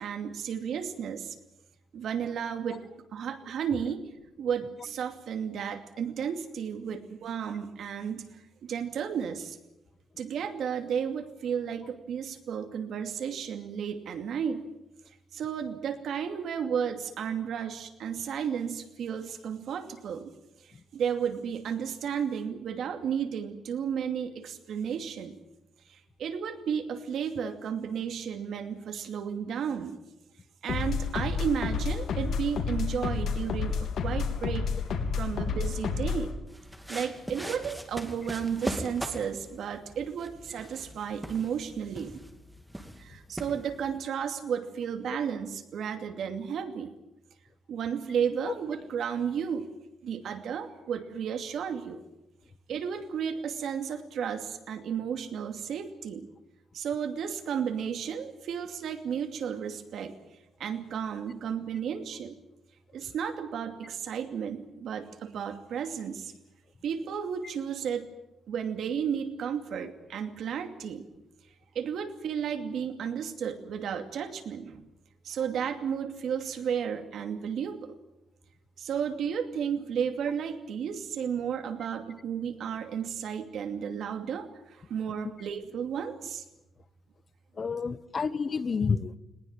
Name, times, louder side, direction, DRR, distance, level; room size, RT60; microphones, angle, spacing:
voice 1, 0.0-1.4 1.9-4.0 4.4-9.6 10.2-14.6 15.3-20.3 20.9-25.4 25.9-30.0 30.6-34.7 35.2-36.3 36.9-42.2 43.0-46.9 47.7-49.7 50.0-52.0 52.7-56.3 56.7-60.2 60.6-62.4 62.9-66.3 66.8-68.1 68.5-71.0 71.7-74.9 75.2-78.0 78.8-86.4, right 7 dB, 70° right, 7 dB, 2.5 m, -33 dB
sound 1, 30.7-36.3, left 5 dB, 70° left, 3.3 m, -30 dB
sound 2, 36.5-44.0, equal, 5° right, 2.5 m, -40 dB
voice 2, 87.6-89.2, left 5 dB, 35° left, 15 dB, 1.0 m, -30 dB
20.5 x 20.0 x 9.0 m, 0.91 s
cardioid pair, 145°, 0 cm